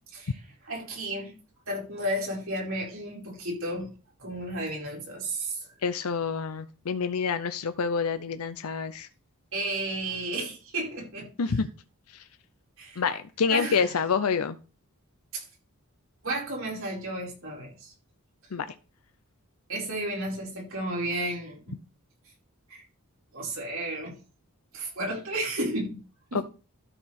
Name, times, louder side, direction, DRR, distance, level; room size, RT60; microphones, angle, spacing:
voice 1, 0.7-1.3 1.7-3.9 4.2-5.7 9.5-11.3 12.8-13.0 13.5-13.9 15.3-15.4 16.2-17.9 19.7-21.7 22.7-22.8 23.3-24.1 24.7-26.0 26.3-26.4, right 1 dB, 65° right, -3 dB, 4.8 m, -32 dB
voice 2, 5.8-9.1 11.4-11.7 12.1-12.2 13.0-14.6 18.5-18.7 26.3-26.4, left 5 dB, 85° left, 11 dB, 0.6 m, -27 dB
13.0 x 4.7 x 4.3 m, 0.34 s
head